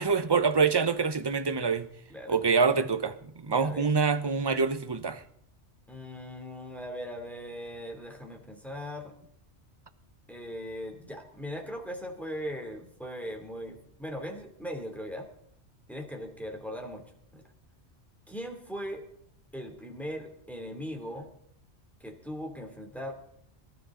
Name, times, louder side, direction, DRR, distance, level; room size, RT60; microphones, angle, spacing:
voice 1, 0.0-1.9 2.3-5.2, right 5 dB, 25° right, 0.7 m, -26 dB
voice 2, 3.5-3.9 5.9-9.1 10.3-15.3 15.9-17.0 17.3-17.4 18.3-19.0 19.5-21.3 22.0-23.1, equal, ahead, 2.8 m, -39 dB
25.0 x 12.5 x 3.8 m
omnidirectional pair, 1.2 m